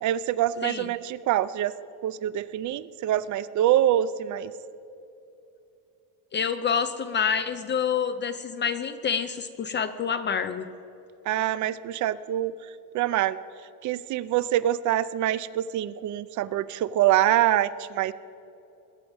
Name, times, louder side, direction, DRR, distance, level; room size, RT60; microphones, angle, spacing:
voice 1, 0.0-1.7 2.0-4.5 11.3-12.5 12.9-13.4 13.8-18.1, right 12 dB, 45° right, 16 dB, 0.5 m, -25 dB
voice 2, 6.3-10.6, left 7 dB, 30° left, 10 dB, 0.4 m, -27 dB
21.0 x 8.7 x 5.3 m, 2.8 s
cardioid pair, 140°, 40 cm